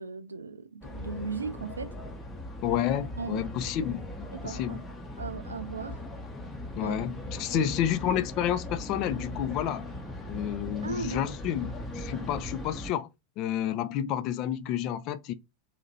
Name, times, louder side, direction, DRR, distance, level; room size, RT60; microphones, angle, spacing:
voice 1, 0.0-2.0 3.2-3.5 4.4-4.8 5.2-6.0 6.8-7.0 7.5-7.7 10.8-11.2, right 4 dB, 75° right, 0.3 m, -37 dB
sound 1, 0.8-12.9, left 1 dB, 15° left, 0.8 m, -39 dB
voice 2, 2.6-4.1 4.4-4.8 6.8-9.9 10.3-13.1 13.4-15.3, left 10 dB, 40° left, 0.3 m, -30 dB
2.8 x 2.4 x 2.7 m
figure-of-eight pair, 90°, 0 cm